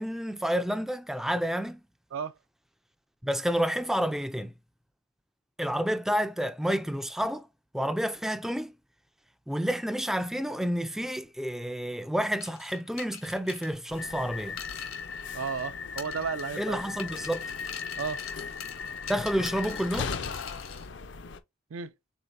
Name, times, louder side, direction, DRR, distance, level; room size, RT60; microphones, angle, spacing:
voice 1, 0.0-1.8 3.2-4.5 5.6-7.5 7.7-8.7 9.5-14.6 16.6-17.5 19.1-20.1, equal, ahead, 0.3 m, -29 dB
sound 1, 12.4-15.7 16.0-16.6 17.0-20.9, left 9 dB, 80° left, 1.4 m, -43 dB
sound 2, 13.9-21.4, left 5 dB, 55° left, 0.5 m, -37 dB
voice 2, 15.3-16.8 18.0-18.2 21.7-21.9, right 6 dB, 70° right, 0.4 m, -33 dB
4.4 x 3.9 x 2.6 m
head